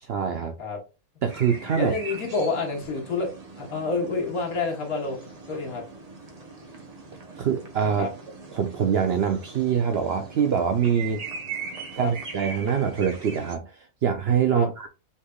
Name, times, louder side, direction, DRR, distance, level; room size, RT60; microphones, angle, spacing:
voice 1, 0.0-0.5 1.2-1.9 7.4-8.1 8.5-11.2 12.0-14.9, right 7 dB, 65° right, 0.6 m, -24 dB
sound 1, 1.3-13.6, right 4 dB, 35° right, 0.7 m, -41 dB
voice 2, 1.7-3.3 3.6-5.2 5.5-5.8 8.0-8.1 11.9-12.1 14.5-14.7, left 4 dB, 70° left, 1.7 m, -28 dB
5.5 x 3.3 x 2.3 m
omnidirectional pair, 1.6 m